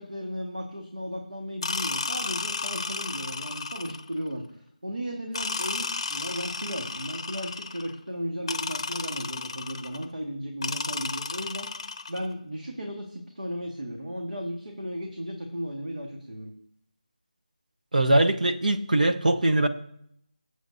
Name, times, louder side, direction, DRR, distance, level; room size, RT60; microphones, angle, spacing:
voice 1, 0.0-16.5, equal, 90° right, 0 dB, 1.8 m, -35 dB
sound 1, 1.6-4.2 5.3-7.9 8.5-10.1 10.6-12.3, left 4 dB, 35° left, 0.9 m, -33 dB
voice 2, 17.9-19.7, right 1 dB, 70° right, 6 dB, 1.1 m, -22 dB
18.0 x 7.6 x 2.8 m, 0.73 s
figure-of-eight pair, 165°, 4 cm